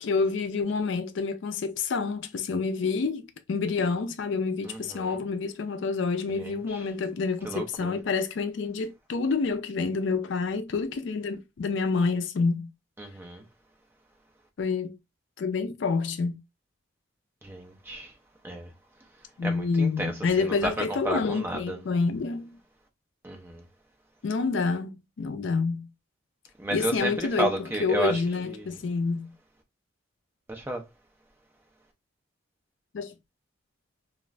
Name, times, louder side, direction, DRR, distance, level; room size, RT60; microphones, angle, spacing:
voice 1, 0.0-3.2 3.5-12.7 14.6-15.0 15.4-16.4 19.4-22.6 24.2-25.9 26.7-29.3 32.9-33.2, left 4 dB, 70° left, 0.4 m, -28 dB
voice 2, 4.6-5.2 6.4-6.5 7.4-8.0 13.0-13.4 17.4-18.1 18.4-18.7 19.4-20.1 20.4-20.7 21.0-21.8 23.2-23.6 26.6-27.1 27.4-28.2 30.5-30.8, right 1 dB, 10° right, 0.5 m, -32 dB
2.4 x 2.4 x 3.1 m
head